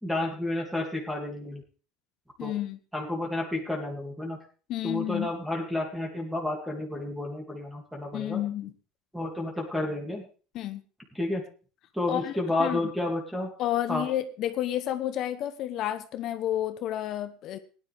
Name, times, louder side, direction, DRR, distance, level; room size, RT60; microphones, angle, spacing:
voice 1, 0.0-1.6 2.4-2.5 2.9-4.4 4.8-8.4 9.1-10.3 11.1-11.4 11.9-13.5 13.9-14.1, left 2 dB, ahead, 2.7 m, -31 dB
voice 2, 2.4-2.8 4.7-5.3 8.1-8.7 10.5-10.8 12.1-12.3 12.6-12.8 13.6-17.6, left 12 dB, 50° left, 1.0 m, -30 dB
16.0 x 10.5 x 3.6 m
supercardioid pair, 125°, 0 cm